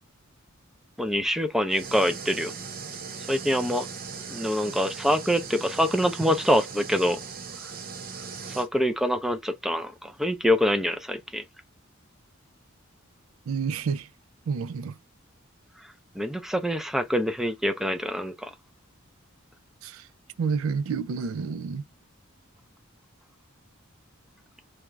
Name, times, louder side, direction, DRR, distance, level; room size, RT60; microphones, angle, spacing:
voice 1, 1.0-2.5 3.3-3.9 4.3-7.2 8.6-11.4 16.2-18.5, equal, ahead, 0.4 m, -25 dB
sound 1, 1.7-8.7, right 5 dB, 45° right, 0.7 m, -39 dB
voice 2, 13.5-14.1 14.5-15.0 19.8-20.1 20.4-21.8, right 5 dB, 75° right, 0.4 m, -29 dB
3.4 x 2.4 x 3.0 m
head